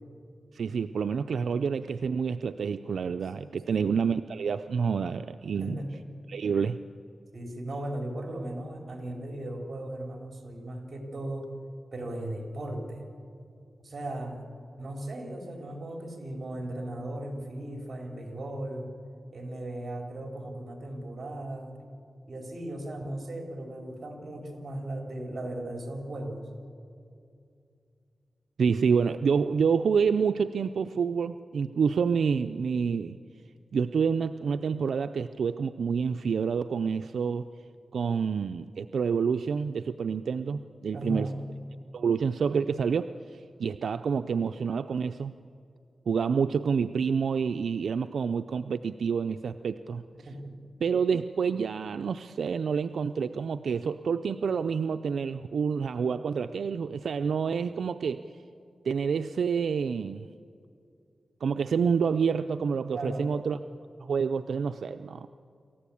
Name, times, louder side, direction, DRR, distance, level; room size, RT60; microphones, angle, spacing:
voice 1, 0.5-5.8 6.3-6.8 28.6-33.2 33.7-37.5 37.9-41.3 41.9-45.3 46.1-50.0 50.8-58.3 58.8-60.3 61.4-63.6 64.0-65.3, right 6 dB, 85° right, 10 dB, 0.4 m, -28 dB
voice 2, 5.6-6.0 7.3-11.5 11.9-13.0 13.8-14.5 14.8-18.9 19.3-21.8 22.3-26.4 40.9-41.3 50.1-50.6 62.9-63.3, right 1 dB, 50° right, 2 dB, 4.0 m, -37 dB
26.5 x 15.0 x 8.6 m, 2.4 s
wide cardioid pair, 75°, 0 cm